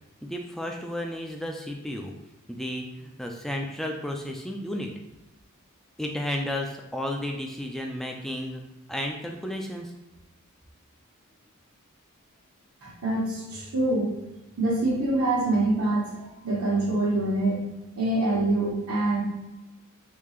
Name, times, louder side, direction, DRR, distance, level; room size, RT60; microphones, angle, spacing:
voice 1, 0.2-2.1 2.5-4.9 6.0-8.6 8.9-9.9, left 1 dB, ahead, 1 dB, 0.3 m, -33 dB
voice 2, 12.8-14.1 14.6-16.1 16.4-17.6 18.0-19.2, right 2 dB, 90° right, -6 dB, 1.1 m, -25 dB
3.6 x 2.4 x 3.1 m, 1.0 s
head